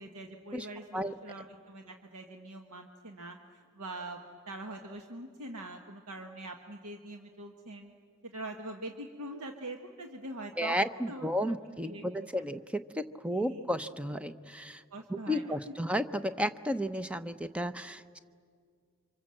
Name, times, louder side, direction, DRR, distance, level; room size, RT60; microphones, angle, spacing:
voice 1, 0.0-4.2 4.5-7.9 8.2-10.7 11.1-11.5 11.9-12.3 13.3-13.6 14.9-15.4, right 1 dB, 90° right, 4 dB, 1.4 m, -43 dB
voice 2, 10.6-14.8 15.1-18.2, equal, 5° right, 10 dB, 0.7 m, -33 dB
29.5 x 25.5 x 7.7 m, 2.1 s
head